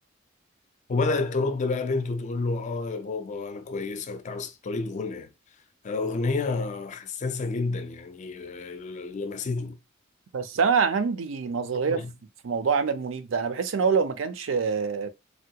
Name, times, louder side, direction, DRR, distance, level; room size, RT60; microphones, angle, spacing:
voice 1, 0.9-5.3 5.8-9.8 11.9-12.1, left 3 dB, 35° left, 0.3 m, -29 dB
voice 2, 10.3-12.0 12.4-15.1, right 5 dB, 70° right, 0.5 m, -25 dB
3.3 x 2.2 x 2.8 m
head